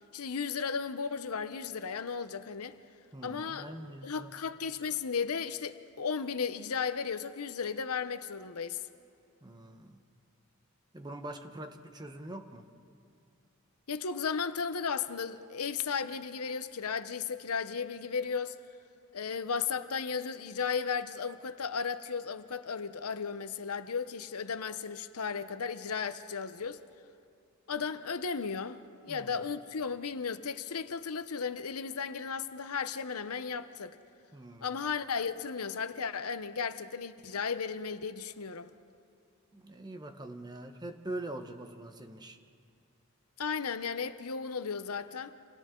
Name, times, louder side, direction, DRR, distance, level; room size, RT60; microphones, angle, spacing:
voice 1, 0.1-2.8 3.2-8.8 13.9-18.6 19.1-26.8 27.7-34.0 34.6-38.7 43.4-45.3, left 6 dB, 90° left, 0.8 m, -35 dB
voice 2, 3.1-4.3 9.4-10.0 10.9-12.7 29.1-29.4 34.3-34.7 39.5-42.4, right 1 dB, 20° right, 1.0 m, -43 dB
29.0 x 27.5 x 3.8 m
head